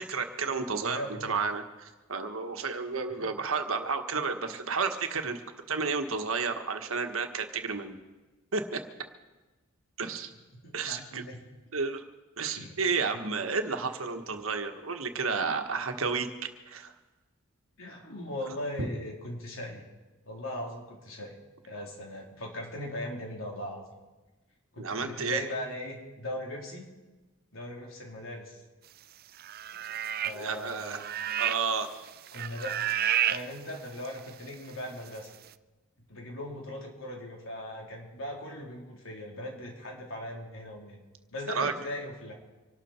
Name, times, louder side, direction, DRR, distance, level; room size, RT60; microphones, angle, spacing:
voice 1, 0.0-5.4 5.7-8.0 8.5-8.8 10.0-10.3 10.7-11.2 11.7-12.0 12.4-16.3 16.7-16.9 24.8-25.4 30.3-31.0 31.4-31.9 41.5-41.7, right 4 dB, 80° right, 6 dB, 1.5 m, -31 dB
voice 2, 0.8-1.5 3.1-3.3 10.0-10.1 10.6-11.4 12.5-12.8 17.8-19.8 20.3-21.4 21.7-23.8 24.7-26.8 27.5-28.6 30.2-31.2 32.3-32.8 33.2-35.3 36.1-41.0 41.3-42.3, left 1 dB, 70° left, -1 dB, 3.9 m, -39 dB
sound 1, 29.4-30.5 30.7-31.8 32.1-33.4 34.0-34.1, right 10 dB, 45° right, 0.5 m, -30 dB
25.5 x 12.5 x 4.5 m, 1.2 s
head